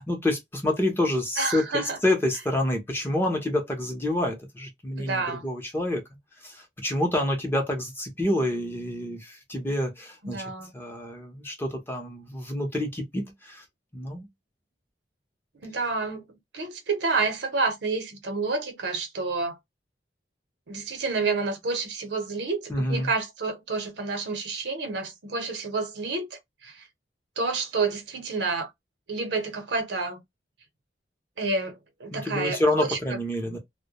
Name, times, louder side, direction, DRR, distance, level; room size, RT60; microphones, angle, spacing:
voice 1, 0.1-6.0 6.4-10.4 10.7-13.6 13.9-14.3 22.7-23.1 32.1-33.6, left 1 dB, 15° left, 0.7 m, -28 dB
voice 2, 1.4-2.0 5.0-5.4 10.2-10.7 15.6-16.3 16.5-19.6 20.7-26.3 26.6-26.8 27.4-28.7 29.1-30.2 31.4-33.0, right 3 dB, 70° right, 0.8 m, -29 dB
2.2 x 2.1 x 2.8 m
head